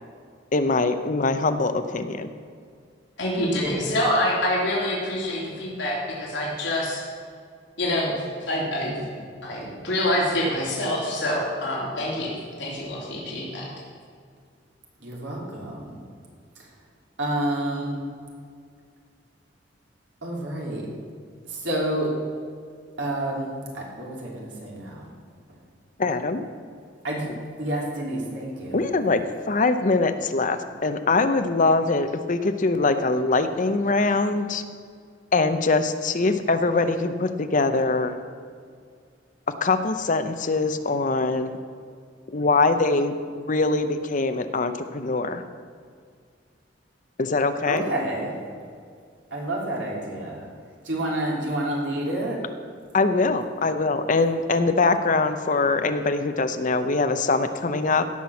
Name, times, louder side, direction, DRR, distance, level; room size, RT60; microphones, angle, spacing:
voice 1, 0.5-2.3 26.0-26.4 28.7-29.2 29.5-34.6 35.3-38.2 39.6-41.6 42.3-45.4 47.2-47.9 52.9-58.0, left 3 dB, 45° left, 9 dB, 0.7 m, -23 dB
voice 2, 3.2-7.0 7.8-8.1 8.5-8.9 9.4-12.3 12.6-13.7, left 1 dB, 70° left, -5 dB, 3.2 m, -26 dB
voice 3, 15.0-16.0 16.6-16.7 17.2-17.9 20.2-20.9 21.5-22.1 23.0-23.5 23.7-25.1 27.0-27.3 27.6-28.9 47.7-48.3 49.3-50.5 50.8-52.4, right 1 dB, 75° right, -3 dB, 3.4 m, -29 dB
17.0 x 6.0 x 7.1 m, 2.1 s
head